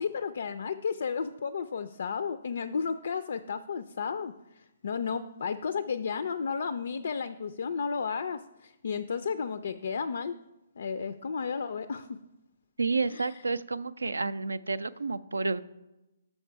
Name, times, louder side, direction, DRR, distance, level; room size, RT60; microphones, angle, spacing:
voice 1, 0.0-10.3 10.8-12.2 13.1-13.4, left 6 dB, 60° left, 12 dB, 0.3 m, -33 dB
voice 2, 12.8-15.6, right 3 dB, 75° right, 17 dB, 0.3 m, -30 dB
6.5 x 5.4 x 4.6 m, 0.99 s
figure-of-eight pair, 130°, 0 cm